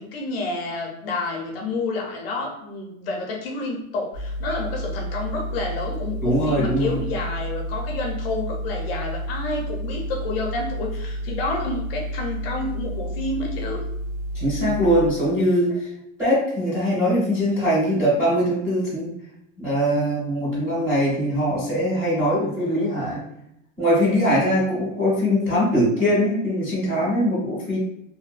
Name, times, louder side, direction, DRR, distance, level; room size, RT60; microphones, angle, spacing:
voice 1, 0.0-13.8 15.7-15.8, left 3 dB, 50° left, 0 dB, 0.5 m, -29 dB
sound 1, 4.1-15.1, equal, 55° right, 0.6 m, -30 dB
voice 2, 6.2-7.0 14.3-15.9 16.2-19.1 19.6-23.2 23.8-27.8, equal, 5° right, -11 dB, 0.5 m, -21 dB
2.6 x 2.1 x 2.4 m, 0.77 s
supercardioid pair, 175°, 39 cm